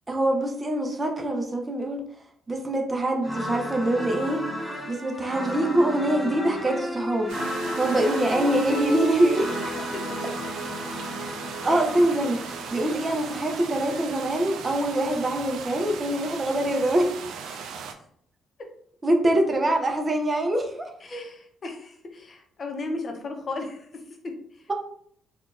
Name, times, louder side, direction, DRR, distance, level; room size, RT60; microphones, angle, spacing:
voice 1, 0.1-2.0 2.5-4.4 4.9-7.4 7.8-9.5 11.6-12.4 12.7-17.1 19.0-20.9, right 1 dB, 25° right, 3 dB, 0.5 m, -24 dB
sound 1, 3.2-13.6, equal, 5° right, 1.0 m, -33 dB
sound 2, 7.3-17.9, right 6 dB, 80° right, 0.3 m, -38 dB
voice 2, 17.5-17.9 21.0-24.7, left 3 dB, 45° left, 3 dB, 0.7 m, -36 dB
3.6 x 2.3 x 2.5 m, 0.65 s
cardioid pair, 90°, 0 cm